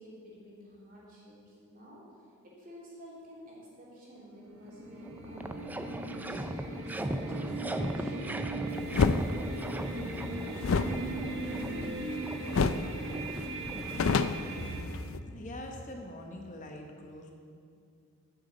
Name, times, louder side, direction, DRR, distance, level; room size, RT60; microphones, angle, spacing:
voice 1, 0.0-2.1 2.4-5.8 6.0-6.4 6.7-8.9, equal, 40° right, -5 dB, 3.3 m, -51 dB
sound 1, 4.2-14.8, right 2 dB, 65° right, 1.5 m, -39 dB
sound 2, 4.7-4.8 5.0-14.5, right 1 dB, 10° right, 0.3 m, -39 dB
sound 3, 8.9-9.2 10.6-12.2 12.5-12.9 13.2-13.3 13.6-15.2, left 4 dB, 65° left, 0.4 m, -28 dB
voice 2, 14.6-17.3, equal, 35° left, 2 dB, 0.9 m, -42 dB
8.5 x 7.8 x 8.6 m, 2.4 s
head